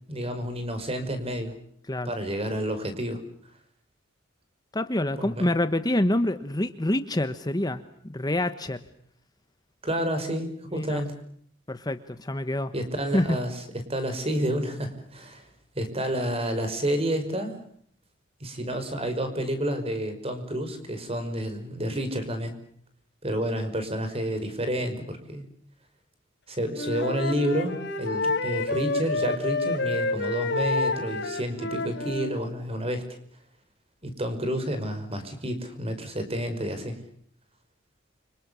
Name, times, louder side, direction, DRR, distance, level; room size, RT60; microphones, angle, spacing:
voice 1, 0.1-1.5 2.1-3.2 5.2-5.5 9.8-11.1 12.7-15.5 15.8-17.6 18.4-22.5 23.2-25.4 26.5-33.0 34.0-37.0, right 1 dB, 30° right, 9 dB, 5.6 m, -30 dB
voice 2, 4.7-8.8 10.7-11.0 11.7-12.7 13.1-13.4, left 1 dB, 20° left, 10 dB, 1.1 m, -27 dB
Wind instrument woodwind instrument, 26.7-32.4, left 3 dB, 60° left, 4.1 m, -29 dB
29.5 x 26.5 x 7.0 m, 0.65 s
head